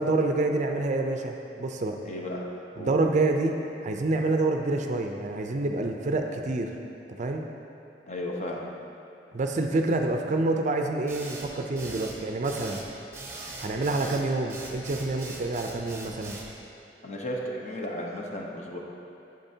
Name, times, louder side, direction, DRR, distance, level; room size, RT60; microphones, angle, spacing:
voice 1, 0.0-2.0 2.8-3.6 3.8-6.7 7.2-7.4 9.3-12.8 13.6-16.4, right 2 dB, 45° right, 3 dB, 0.4 m, -27 dB
voice 2, 2.0-2.4 2.8-3.0 8.1-8.7 17.0-18.8, left 1 dB, 40° left, -1 dB, 0.9 m, -34 dB
sound 1, 11.1-16.5, right 2 dB, 15° right, 0.8 m, -41 dB
8.9 x 7.7 x 2.8 m, 2.8 s
head